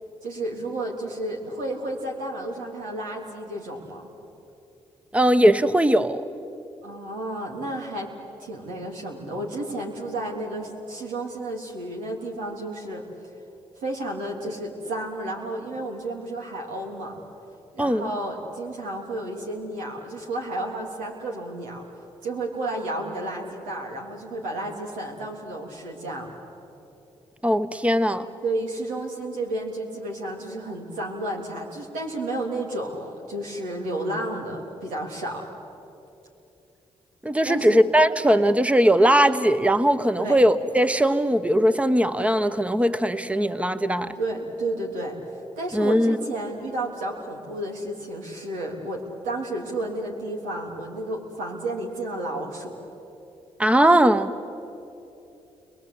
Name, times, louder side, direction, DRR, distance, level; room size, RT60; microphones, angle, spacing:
voice 1, 0.2-4.1 6.8-8.1 8.4-13.0 13.8-17.2 17.7-21.8 22.2-26.3 28.4-35.5 37.4-37.8 40.2-40.4 44.2-45.2 45.6-52.8, right 1 dB, 90° right, 0 dB, 3.4 m, -32 dB
voice 2, 5.1-6.2 17.8-18.1 27.4-28.3 37.2-44.1 45.7-46.2 53.6-54.3, equal, 10° right, 10 dB, 1.2 m, -19 dB
30.0 x 23.0 x 8.4 m, 2.9 s
supercardioid pair, 45°, 13 cm